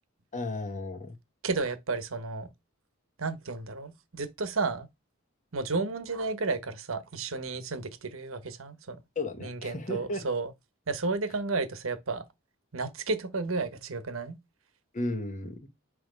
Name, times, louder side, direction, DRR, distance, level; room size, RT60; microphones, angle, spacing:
voice 1, 0.3-1.1 9.1-10.3 14.9-15.6, left 2 dB, 35° left, 1.3 m, -34 dB
voice 2, 1.4-2.5 3.2-4.9 5.5-9.0 9.4-10.5 10.9-12.2 12.7-14.4, right 3 dB, 75° right, 1.1 m, -32 dB
6.1 x 3.1 x 5.2 m
head